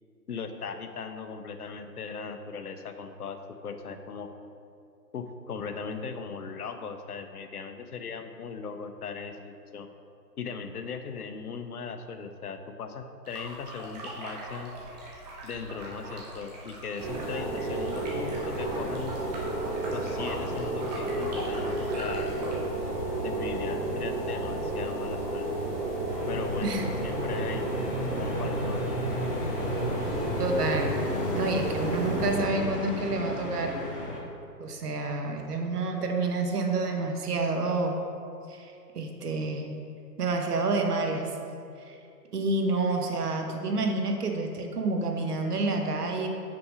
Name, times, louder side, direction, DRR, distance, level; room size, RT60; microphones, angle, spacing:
voice 1, 0.3-3.4 3.6-4.3 5.1-9.9 10.4-14.7 15.4-19.2 19.9-22.4 23.2-25.5 26.3-27.7 28.2-28.8, left 5 dB, 65° left, 8 dB, 0.7 m, -38 dB
sound 1, 13.2-22.5, right 2 dB, 25° right, 1.1 m, -42 dB
sound 2, 17.0-32.4, right 2 dB, ahead, 0.7 m, -32 dB
sound 3, 26.1-34.2, left 1 dB, 35° left, 0.9 m, -34 dB
voice 2, 30.4-31.0 31.3-33.8 34.6-38.0 38.5-39.7 40.2-41.3 41.8-42.0 42.3-46.3, right 3 dB, 65° right, 3 dB, 1.1 m, -29 dB
5.9 x 4.7 x 4.9 m, 2.5 s
hypercardioid pair, 150°, 50 cm